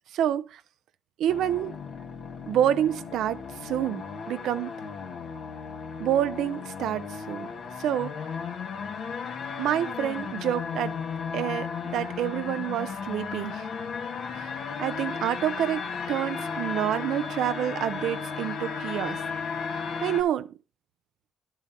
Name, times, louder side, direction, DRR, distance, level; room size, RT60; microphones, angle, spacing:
voice 1, 0.1-0.6 1.2-1.7 2.5-4.7 6.0-7.5 7.8-8.1 9.6-11.0 11.3-13.7 14.3-19.2 20.0-20.5, right 11 dB, 80° right, 0.5 m, -28 dB
sound 1, 1.3-20.2, left 6 dB, 70° left, 1.5 m, -35 dB
11.0 x 8.4 x 2.7 m
cardioid pair, 75°, 0 cm